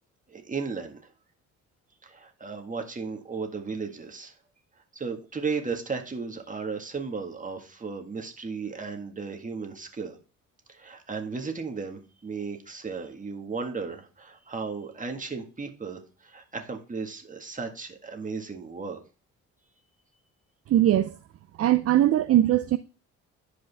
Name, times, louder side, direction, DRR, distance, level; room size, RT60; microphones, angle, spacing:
voice 1, 0.3-1.0 2.0-4.3 4.9-10.2 10.7-19.0, right 4 dB, 25° right, 1.8 m, -35 dB
voice 2, 20.7-21.2 21.6-22.8, right 12 dB, 50° right, 0.5 m, -21 dB
10.5 x 5.1 x 3.5 m
cardioid pair, 90°, 30 cm